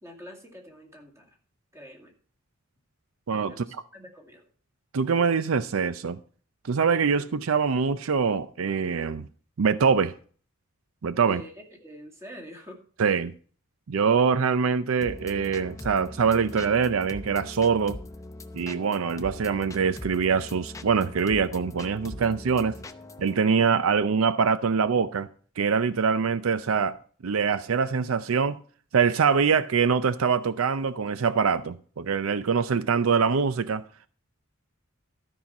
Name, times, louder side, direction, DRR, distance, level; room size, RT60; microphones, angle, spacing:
voice 1, 0.0-1.3 1.7-2.1 3.5-4.4 11.2-12.8, equal, 15° right, 2.2 m, -45 dB
voice 2, 3.3-3.6 4.9-6.2 6.6-9.2 9.6-10.2 11.0-11.4 13.0-13.3 13.9-18.0 18.5-22.8 23.2-25.3 25.6-27.0 27.2-28.6 28.9-33.8, right 6 dB, 75° right, 0.5 m, -24 dB
sound 1, 15.0-23.4, left 1 dB, 15° left, 0.7 m, -41 dB
13.0 x 5.6 x 5.9 m
head